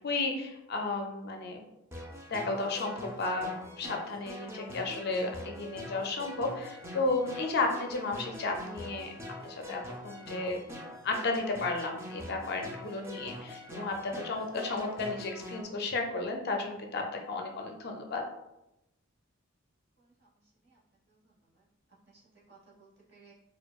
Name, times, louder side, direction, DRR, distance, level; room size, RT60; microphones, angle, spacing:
voice 1, 0.0-1.6 2.3-9.1 9.4-10.6 11.0-18.3, left 3 dB, 50° left, 3 dB, 0.4 m, -33 dB
sound 1, 1.9-15.6, left 1 dB, 10° right, 0.4 m, -44 dB
voice 2, 20.0-20.8 21.1-21.7 22.1-22.2 22.5-23.3, right 4 dB, 50° right, -6 dB, 1.2 m, -61 dB
4.5 x 2.3 x 2.3 m, 0.88 s
head